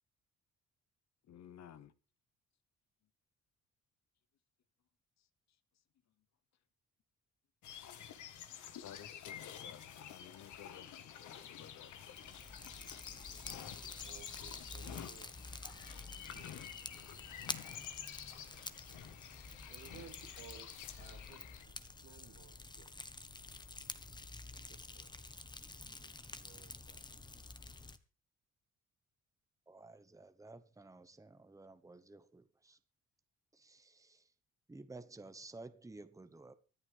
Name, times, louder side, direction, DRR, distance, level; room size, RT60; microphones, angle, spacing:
voice 1, 1.3-1.9 8.7-12.1, left 9 dB, 60° left, 1.0 m, -55 dB
sound 1, 7.6-21.6, left 9 dB, 75° left, 1.5 m, -50 dB
Fire, 11.8-28.0, left 3 dB, 15° left, 1.1 m, -49 dB
voice 2, 14.0-17.3 19.7-21.7 22.0-22.9 24.5-25.4 26.0-26.1 26.4-27.1, right 8 dB, 85° right, 3.3 m, -60 dB
voice 3, 29.7-32.8 33.5-34.3 34.7-36.5, right 2 dB, 10° right, 1.0 m, -54 dB
24.0 x 8.3 x 3.4 m
cardioid pair, 90°, 30 cm